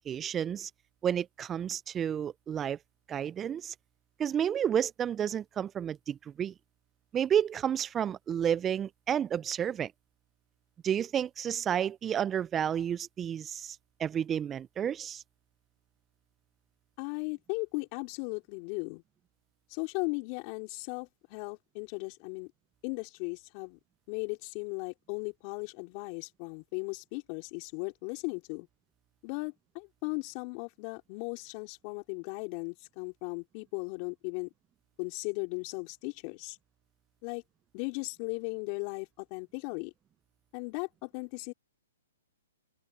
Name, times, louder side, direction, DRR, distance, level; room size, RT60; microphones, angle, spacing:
voice 1, 0.1-0.7 1.0-2.8 3.1-3.7 4.2-6.5 7.1-9.9 10.8-15.2, right 9 dB, 15° right, 0.4 m, -31 dB
voice 2, 17.0-19.0 19.7-22.5 22.8-23.8 24.1-28.7 29.2-34.5 35.0-36.6 37.2-37.4 37.7-39.9 40.5-41.5, left 32 dB, 35° left, 3.8 m, -37 dB
open air
hypercardioid pair, 140°, 0 cm